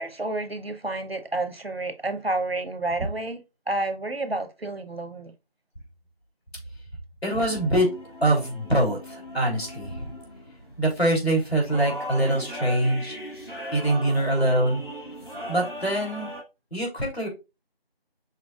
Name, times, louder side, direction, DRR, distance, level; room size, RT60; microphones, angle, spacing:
voice 1, 0.0-5.3, right 2 dB, 75° right, 0.9 m, -30 dB
voice 2, 7.2-7.9 8.2-10.1 10.8-13.2 13.7-14.8 15.5-16.3 16.7-17.3, right 1 dB, 85° left, 3.1 m, -24 dB
sound 1, 7.3-16.4, equal, 55° left, 1.4 m, -39 dB
6.0 x 3.7 x 2.3 m
figure-of-eight pair, 180°, 31 cm